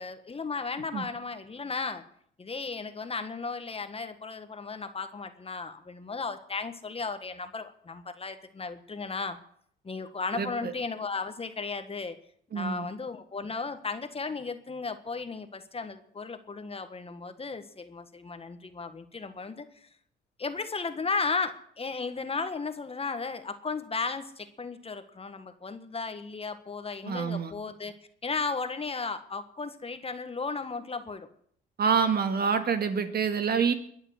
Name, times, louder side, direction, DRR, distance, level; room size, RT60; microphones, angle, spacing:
voice 1, 0.0-2.0 2.4-9.4 9.8-12.1 12.5-19.9 20.4-27.9 28.2-31.3, left 4 dB, 30° left, 9 dB, 1.6 m, -35 dB
voice 2, 10.3-10.7 12.5-12.9 27.1-27.5 31.8-33.7, right 6 dB, 50° right, 8 dB, 1.9 m, -27 dB
22.0 x 7.4 x 8.0 m, 0.64 s
cardioid pair, 90°, 20 cm